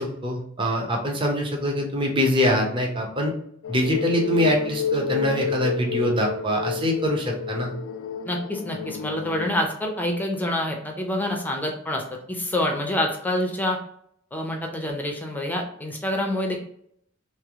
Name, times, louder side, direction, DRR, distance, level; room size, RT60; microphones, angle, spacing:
voice 1, 0.0-3.3 3.7-7.7, equal, 25° right, 0 dB, 0.8 m, -24 dB
sound 1, 3.6-9.5, left 7 dB, 80° left, 0.3 m, -30 dB
voice 2, 8.2-12.0 12.3-13.8 14.3-16.6, left 1 dB, 10° left, 1 dB, 0.5 m, -27 dB
3.4 x 3.0 x 3.5 m, 0.67 s
head